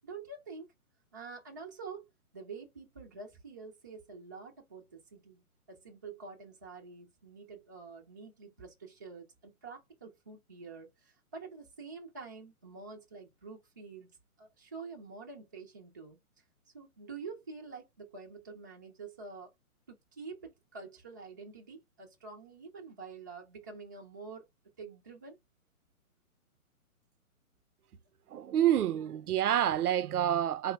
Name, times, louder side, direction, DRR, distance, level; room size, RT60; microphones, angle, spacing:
voice 1, 0.0-0.7 1.1-2.1 2.3-5.4 5.7-16.2 16.7-19.5 19.9-24.5 24.8-25.4, right 4 dB, 15° right, 0.4 m, -47 dB
voice 2, 28.3-30.7, right 11 dB, 90° right, 0.6 m, -28 dB
4.7 x 2.0 x 4.2 m
hypercardioid pair, 150°, 44 cm